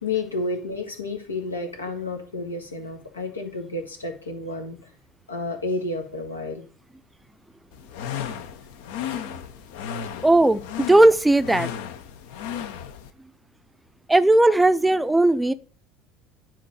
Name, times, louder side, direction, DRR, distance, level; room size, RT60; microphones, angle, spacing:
voice 1, 0.0-4.8 5.3-6.7, left 2 dB, 85° left, 1.8 m, -30 dB
sound 1, 7.7-13.1, left 9 dB, 65° left, 0.9 m, -34 dB
voice 2, 9.1-9.4 10.2-11.7 14.1-15.5, right 2 dB, 10° right, 0.6 m, -18 dB
10.0 x 4.4 x 6.5 m
figure-of-eight pair, 65°, 0 cm